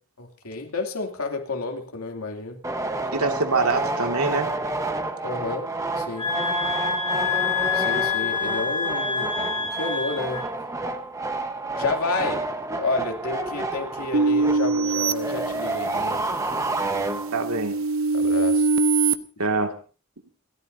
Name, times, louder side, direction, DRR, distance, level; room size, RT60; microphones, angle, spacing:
voice 1, 0.2-2.6 5.2-5.7 6.0-6.3 7.7-10.4 11.8-12.4 12.8-16.3 18.1-18.7, left 3 dB, 85° left, 3 dB, 2.8 m, -30 dB
sound 1, 2.6-17.6, right 2 dB, 15° right, 1.1 m, -29 dB
voice 2, 3.1-4.5 17.3-17.8 19.4-19.7, right 3 dB, 85° right, 4 dB, 2.2 m, -24 dB
sound 2, 6.2-10.5, left 5 dB, 20° left, 2.9 m, -27 dB
sound 3, 14.1-16.1 16.6-19.2, right 3 dB, 70° right, 0.8 m, -23 dB
28.0 x 13.0 x 2.7 m, 0.36 s
head